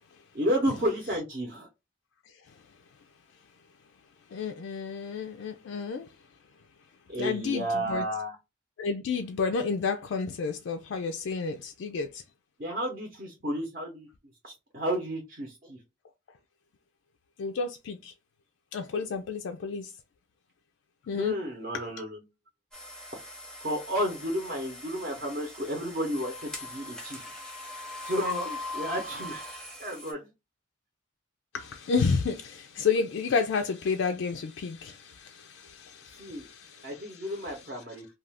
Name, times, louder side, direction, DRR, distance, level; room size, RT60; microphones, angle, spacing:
voice 1, 0.3-1.7 7.1-8.4 12.6-14.1 14.4-15.8 21.2-22.2 23.1-23.2 23.6-27.3 28.0-29.4 29.8-30.3 36.2-36.5 36.8-38.1, equal, 45° right, 0.7 m, -32 dB
voice 2, 4.3-6.1 7.2-8.0 8.8-12.2 17.4-18.1 18.7-19.9 21.0-21.4 31.5-37.1, left 5 dB, 70° left, 0.3 m, -31 dB
sound 1, 22.7-30.1, left 2 dB, 5° left, 0.6 m, -41 dB
2.4 x 2.3 x 3.3 m
head